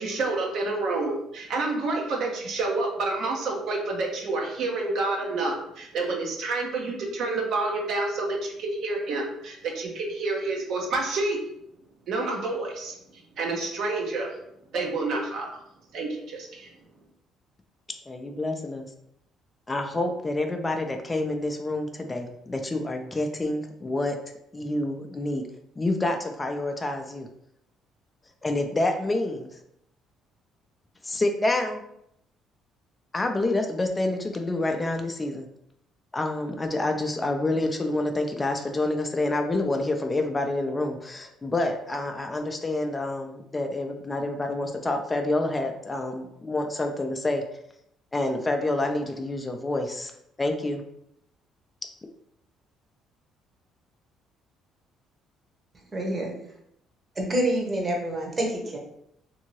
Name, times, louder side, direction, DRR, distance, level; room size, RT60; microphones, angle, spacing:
voice 1, 0.0-11.4 12.1-13.0 13.4-14.3 14.7-15.5 15.9-16.7, right 3 dB, 65° right, 0 dB, 0.7 m, -28 dB
voice 2, 18.1-18.9 19.7-24.2 24.5-25.5 25.8-27.3 28.4-29.5 31.0-31.8 33.1-35.5 36.1-47.4 48.1-50.1 50.4-50.8, left 2 dB, 20° left, 5 dB, 0.4 m, -28 dB
voice 3, 55.9-56.3 57.2-58.8, right 1 dB, 30° right, 0 dB, 0.9 m, -27 dB
2.6 x 2.6 x 3.0 m, 0.77 s
cardioid pair, 85°, 0 cm